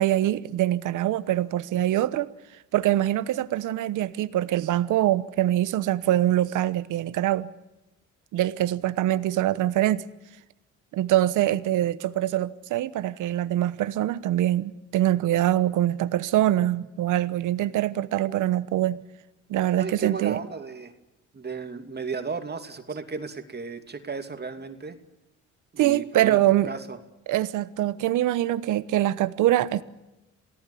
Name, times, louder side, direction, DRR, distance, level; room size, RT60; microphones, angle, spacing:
voice 1, 0.0-2.3 2.7-7.5 8.3-10.1 10.9-19.0 19.5-20.4 25.8-26.7 27.3-29.8, right 13 dB, 85° right, 15 dB, 1.1 m, -24 dB
voice 2, 19.7-20.9 21.3-25.0 25.7-26.4 26.6-27.0, right 5 dB, 35° right, 7 dB, 2.7 m, -34 dB
28.0 x 18.0 x 8.5 m, 0.96 s
cardioid pair, 90°, 30 cm